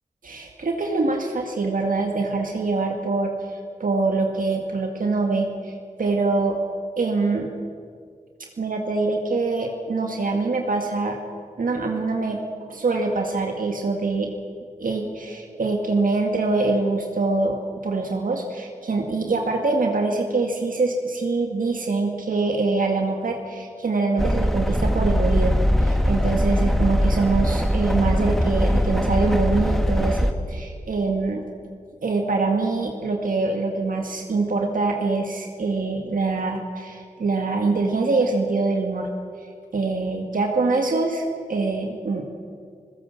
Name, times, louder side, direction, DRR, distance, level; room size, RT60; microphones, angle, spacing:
voice 1, 0.2-6.6 7.0-7.5 8.6-11.2 11.6-12.4 12.7-14.3 14.8-17.6 17.8-31.4 32.0-39.1 39.7-42.3, right 3 dB, 75° right, 2 dB, 2.1 m, -24 dB
sound 1, 24.2-30.3, equal, ahead, 2.0 m, -21 dB
28.0 x 16.0 x 7.4 m, 2.2 s
cardioid pair, 50°, 14 cm